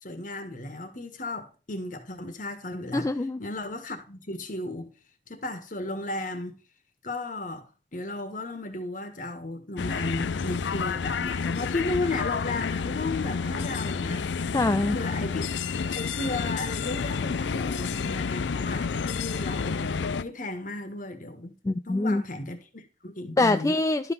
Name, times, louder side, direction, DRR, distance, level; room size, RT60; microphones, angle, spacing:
voice 1, 0.0-3.1 3.4-4.9 5.3-6.6 7.0-7.6 7.9-14.3 14.9-15.5 15.7-21.5 21.8-23.8, left 2 dB, 45° left, 1.5 m, -34 dB
voice 2, 2.9-3.4 14.5-15.0 21.6-22.2 23.4-24.1, left 2 dB, 15° left, 0.3 m, -24 dB
sound 1, 9.8-20.2, left 5 dB, 80° left, 0.5 m, -30 dB
12.0 x 5.8 x 4.0 m
head